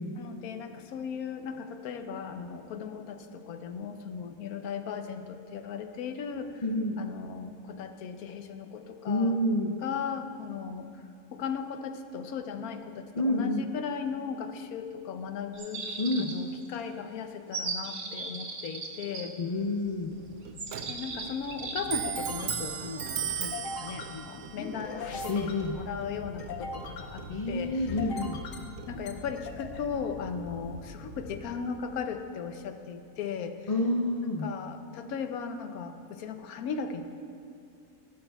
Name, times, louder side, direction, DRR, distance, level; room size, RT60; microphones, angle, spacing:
voice 1, 0.2-6.6 7.0-9.3 9.8-10.9 11.3-19.3 20.9-27.8 28.9-33.6 34.4-37.0, left 6 dB, 90° left, 8 dB, 1.2 m, -37 dB
voice 2, 6.6-7.0 9.1-9.8 13.2-13.7 16.0-16.3 19.4-20.2 25.3-25.8 27.3-28.4 33.7-34.5, left 1 dB, 50° left, 2 dB, 0.5 m, -28 dB
sound 1, 15.5-16.6 17.5-19.2 20.6-21.8, right 4 dB, 60° right, 1.4 m, -37 dB
sound 2, 19.7-32.3, left 3 dB, 70° left, 1.2 m, -42 dB
Clock, 20.1-29.4, right 9 dB, 75° right, 1.0 m, -39 dB
16.0 x 12.0 x 2.3 m, 2.5 s
omnidirectional pair, 1.5 m